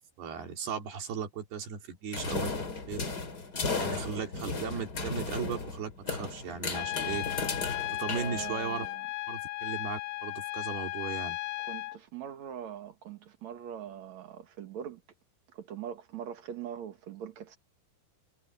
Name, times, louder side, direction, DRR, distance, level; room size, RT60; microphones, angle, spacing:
voice 1, 0.2-3.0 3.8-7.2 7.9-8.9 9.3-11.4, right 7 dB, 80° right, 5.2 m, -37 dB
sound 1, 2.1-8.9, left 4 dB, 25° left, 3.0 m, -35 dB
Trumpet, 6.7-12.0, left 19 dB, 85° left, 2.8 m, -36 dB
voice 2, 8.1-9.0 11.6-15.0 15.5-17.6, right 9 dB, 55° right, 2.5 m, -42 dB
omnidirectional pair, 4.6 m